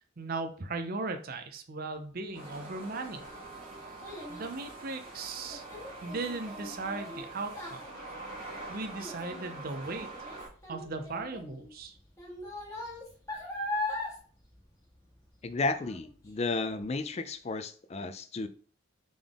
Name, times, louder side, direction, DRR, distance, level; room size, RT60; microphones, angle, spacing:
voice 1, 0.2-3.2 4.3-5.6 6.0-7.5 8.7-10.1 10.7-11.9, right 3 dB, 45° right, 6 dB, 0.6 m, -37 dB
sound 1, 2.3-10.5, right 3 dB, 25° right, 1.7 m, -45 dB
Child speech kid speaking, 2.8-15.5 15.8-16.3 16.8-16.9, left 2 dB, 15° left, 1.3 m, -41 dB
voice 2, 15.4-18.5, left 3 dB, 30° left, 11 dB, 0.4 m, -33 dB
3.8 x 3.5 x 3.6 m, 0.43 s
head